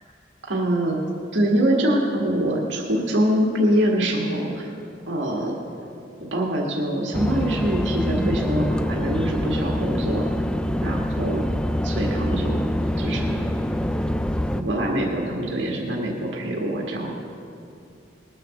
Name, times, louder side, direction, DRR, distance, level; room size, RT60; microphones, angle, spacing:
voice 1, 0.4-1.0 1.3-4.7 5.1-5.6 6.2-10.3 10.8-11.4 11.8-12.6 13.0-13.5 14.5-17.1, right 1 dB, 75° right, -1 dB, 1.7 m, -24 dB
sound 1, 7.1-14.6, left 1 dB, 5° left, 0.4 m, -25 dB
20.0 x 6.7 x 7.1 m, 2.6 s
head